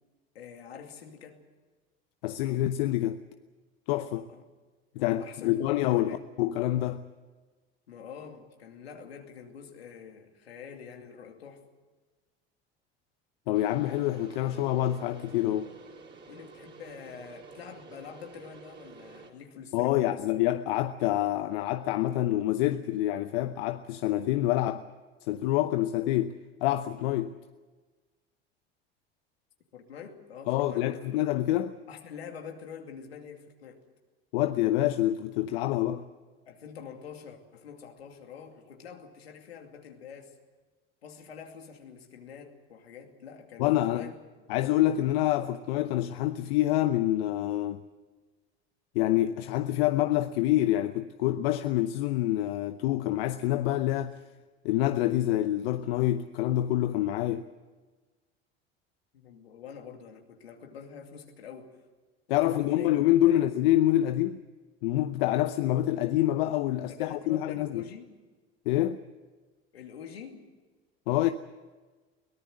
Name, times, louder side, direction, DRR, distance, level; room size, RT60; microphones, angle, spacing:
voice 1, 0.3-1.4 4.1-4.5 4.9-6.2 7.9-11.6 16.3-20.3 29.7-31.2 31.9-33.8 36.5-40.3 41.0-44.5 59.1-61.8 62.3-63.0 63.2-63.4 66.7-68.1 69.7-70.4, left 7 dB, 90° left, 2.6 m, -46 dB
voice 2, 2.2-3.2 3.9-4.3 4.9-7.0 13.5-15.7 19.7-24.8 25.3-27.3 30.5-31.7 34.3-36.0 43.6-44.1 44.5-47.8 48.9-54.2 54.6-57.5 62.3-64.4 64.8-67.8 68.7-69.0 71.1-71.3, left 14 dB, 75° left, 0.9 m, -26 dB
sound 1, 13.5-19.3, right 4 dB, 35° right, 4.3 m, -50 dB
23.0 x 18.5 x 7.8 m
hypercardioid pair, 75°, 30 cm